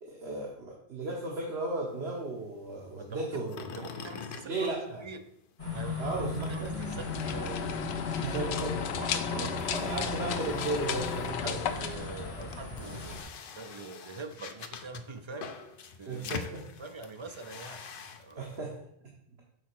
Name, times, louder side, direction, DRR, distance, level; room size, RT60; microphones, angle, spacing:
voice 1, 0.0-3.6 4.4-5.0 6.0-6.5 8.2-8.7 9.3-11.5 16.1-16.6 18.4-18.7, right 2 dB, 80° right, -1 dB, 1.4 m, -35 dB
sound 1, 1.8-5.4 5.7-18.6, left 6 dB, 60° left, 0.8 m, -46 dB
voice 2, 3.0-3.4 3.7-5.2 5.7-8.5 9.0-10.0 11.2-13.2 13.6-15.5 16.0-16.5 16.8-17.8 18.2-18.6, right 3 dB, 35° right, 7 dB, 0.6 m, -44 dB
sound 2, 5.6-13.2, left 3 dB, 35° left, 1.8 m, -37 dB
sound 3, 6.7-12.9, left 7 dB, 90° left, 0.9 m, -35 dB
6.3 x 4.1 x 6.1 m, 0.74 s
omnidirectional pair, 1.1 m